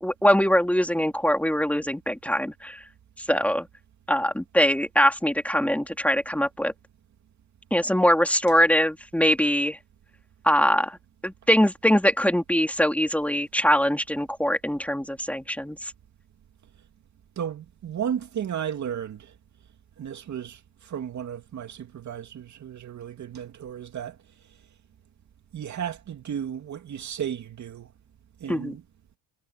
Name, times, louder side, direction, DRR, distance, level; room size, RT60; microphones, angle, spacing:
voice 1, 0.0-2.8 3.3-3.7 4.1-6.7 7.7-9.8 10.4-11.0 11.2-15.9 28.5-28.8, equal, 5° left, 2.7 m, -22 dB
voice 2, 17.4-19.3 20.0-24.2 25.5-27.9 28.4-28.8, right 9 dB, 50° right, 2.8 m, -34 dB
cardioid pair, 115°, 37 cm